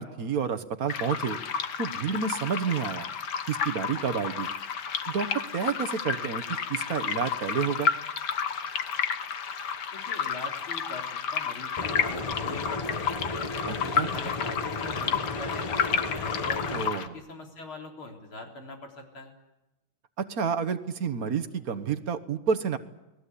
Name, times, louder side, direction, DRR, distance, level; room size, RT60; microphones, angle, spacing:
voice 1, 0.0-1.4 1.8-3.1 3.5-4.5 5.1-5.3 5.5-7.9 13.6-14.1 16.7-17.1 20.2-22.8, right 6 dB, 50° right, 10 dB, 1.5 m, -30 dB
sound 1, 0.9-17.1, left 7 dB, 60° left, 1.7 m, -31 dB
voice 2, 9.9-13.4 13.7-16.7 16.9-19.3, left 2 dB, 85° left, 2 dB, 4.6 m, -42 dB
sound 2, 11.8-16.9, left 2 dB, 20° left, 0.9 m, -35 dB
29.5 x 20.5 x 8.4 m, 0.97 s
omnidirectional pair, 2.2 m